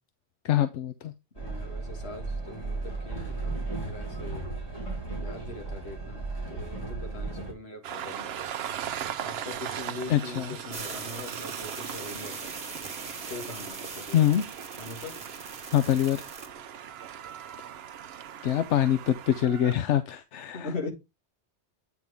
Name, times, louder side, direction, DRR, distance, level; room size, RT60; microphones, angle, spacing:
voice 1, 0.4-1.1 10.1-10.4 14.1-14.4 15.7-16.2 18.4-20.6, left 11 dB, 85° left, 1.0 m, -24 dB
Train, 1.3-7.5, right 3 dB, 30° left, 3.3 m, -35 dB
voice 2, 1.4-4.5 5.2-8.5 9.2-12.5 13.3-14.3 14.8-15.2 20.5-20.9, left 3 dB, 65° left, 2.1 m, -41 dB
Train 2, 7.8-19.7, right 9 dB, 65° right, 0.8 m, -39 dB
sound 1, 10.7-16.5, right 3 dB, 40° right, 1.4 m, -41 dB
8.7 x 6.0 x 3.5 m
omnidirectional pair, 1.2 m